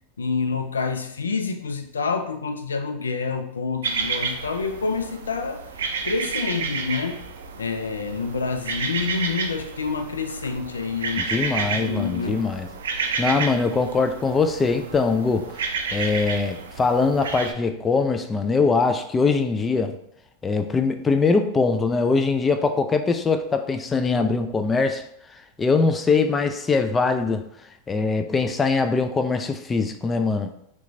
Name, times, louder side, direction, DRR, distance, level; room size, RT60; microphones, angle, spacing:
voice 1, 0.2-5.6 6.0-7.2 7.6-12.5, left 4 dB, 85° left, 0.4 m, -28 dB
sound 1, 3.8-17.5, right 5 dB, 75° right, 0.4 m, -31 dB
voice 2, 11.2-12.7 13.2-15.6 15.9-20.0 20.4-25.0 25.6-27.4 27.9-30.5, left 4 dB, 20° left, 0.4 m, -22 dB
3.2 x 3.0 x 2.6 m
hypercardioid pair, 95°, 0 cm